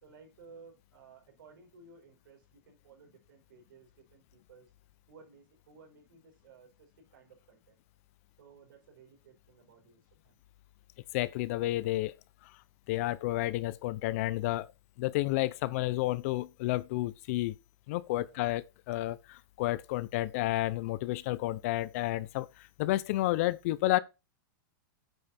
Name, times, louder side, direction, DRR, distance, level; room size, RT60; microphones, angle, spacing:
voice 1, 0.0-4.7 5.1-7.8 8.4-10.4 18.2-18.5, right 5 dB, 70° right, 4.8 m, -57 dB
voice 2, 11.1-12.1 12.4-12.5 12.9-14.7 15.0-17.5 17.9-24.0, left 17 dB, 40° left, 0.5 m, -31 dB
9.0 x 5.5 x 4.2 m
supercardioid pair, 160°, 11 cm